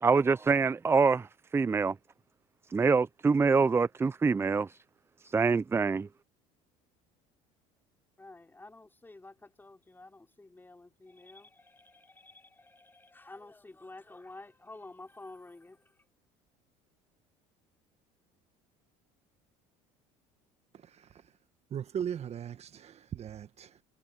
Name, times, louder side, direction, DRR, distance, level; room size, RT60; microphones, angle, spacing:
voice 1, 0.0-1.3 1.5-1.9 2.7-4.8 5.2-6.1, right 4 dB, 15° right, 0.4 m, -25 dB
voice 2, 8.2-16.1, left 2 dB, 15° left, 3.8 m, -51 dB
voice 3, 20.7-21.3 21.7-23.8, right 8 dB, 40° right, 1.4 m, -39 dB
supercardioid pair, 90°, 16 cm